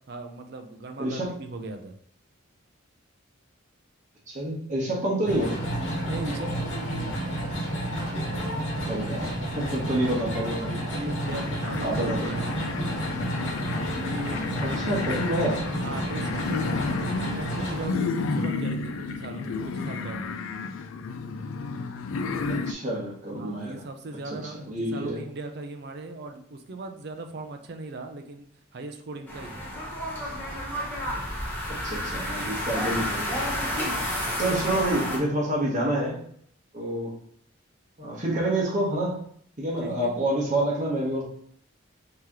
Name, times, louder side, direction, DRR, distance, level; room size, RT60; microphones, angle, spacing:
voice 1, 0.1-2.0 6.0-7.4 10.9-12.5 13.9-14.4 14.7-14.9 15.8-20.3 23.4-29.7 39.8-40.2, right 2 dB, 50° right, 6 dB, 0.5 m, -38 dB
voice 2, 1.0-1.3 4.3-5.5 8.8-10.8 11.8-12.3 14.6-15.6 22.5-23.8 24.3-25.2 31.7-33.5 34.0-34.1 34.4-36.2 36.7-37.1 38.0-39.2 39.6-41.2, right 1 dB, 35° right, -3 dB, 1.1 m, -28 dB
sound 1, 5.3-17.9, right 1 dB, 65° left, 1.1 m, -31 dB
sound 2, 11.2-22.7, left 4 dB, 80° left, 0.3 m, -32 dB
sound 3, 29.3-35.2, equal, 10° left, 0.8 m, -30 dB
3.2 x 2.9 x 3.6 m, 0.63 s
head